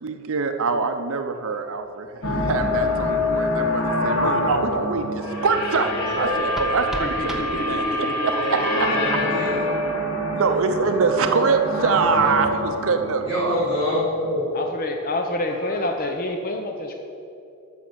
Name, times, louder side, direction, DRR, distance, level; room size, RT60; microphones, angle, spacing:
voice 1, 0.0-8.9 10.3-13.6, right 4 dB, 65° right, 7 dB, 0.6 m, -24 dB
sound 1, 1.3-2.9 3.2-6.7 7.1-7.2 7.4-9.1 9.4-11.1 11.4-11.5 11.8-14.3 14.6-14.7 15.0-16.2, left 1 dB, 65° left, 1.6 m, -40 dB
sound 2, 2.2-14.3, left 1 dB, 85° left, 1.5 m, -25 dB
voice 2, 5.9-6.4 8.9-9.6 12.2-12.3 13.2-14.4, equal, 25° left, -9 dB, 2.6 m, -26 dB
sound 3, 6.1-8.1, right 1 dB, ahead, 0.8 m, -37 dB
voice 3, 7.0-9.6 14.5-17.0, left 2 dB, 40° left, 4 dB, 0.7 m, -29 dB
9.4 x 6.4 x 7.3 m, 2.7 s
head